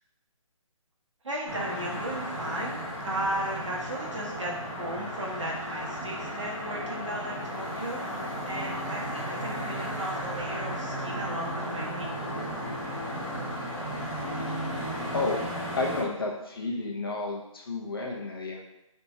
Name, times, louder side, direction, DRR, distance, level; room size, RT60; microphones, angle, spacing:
voice 1, 1.2-12.3, right 1 dB, 60° right, -4 dB, 1.3 m, -35 dB
sound 1, 1.4-16.0, equal, 5° right, 1.1 m, -34 dB
voice 2, 15.1-18.6, left 3 dB, 40° left, -1 dB, 0.6 m, -32 dB
3.4 x 2.8 x 4.2 m, 0.89 s
hypercardioid pair, 175°, 18 cm